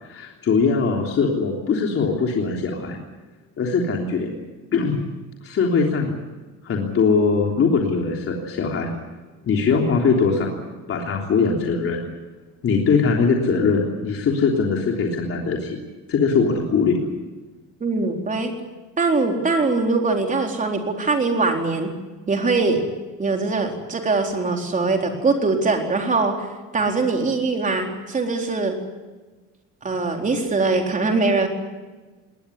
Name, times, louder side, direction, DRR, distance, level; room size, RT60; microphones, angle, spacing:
voice 1, 0.0-3.0 3.6-4.3 4.7-5.0 5.4-6.1 6.6-8.9 9.5-10.5 10.9-12.0 12.6-15.8 16.1-17.0, left 5 dB, 45° left, 0 dB, 3.4 m, -21 dB
voice 2, 17.8-18.6 19.0-21.9 22.3-22.8 23.2-28.8 29.8-31.5, right 3 dB, 25° right, 2 dB, 4.1 m, -22 dB
20.5 x 19.0 x 9.9 m, 1.2 s
cardioid pair, 145°, 33 cm